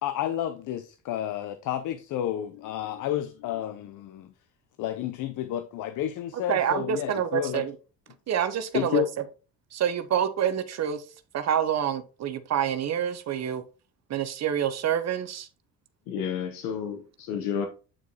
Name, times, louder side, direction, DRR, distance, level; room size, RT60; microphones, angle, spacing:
voice 1, 0.0-4.3 4.8-7.6 8.7-9.1, left 11 dB, 60° left, 0.7 m, -30 dB
voice 2, 6.5-7.7 8.3-9.0 9.7-11.0 11.3-13.6 14.1-15.5, right 9 dB, 50° right, 0.8 m, -27 dB
voice 3, 16.1-17.7, left 7 dB, 80° left, 1.0 m, -31 dB
8.7 x 4.7 x 2.8 m
supercardioid pair, 70°, 35 cm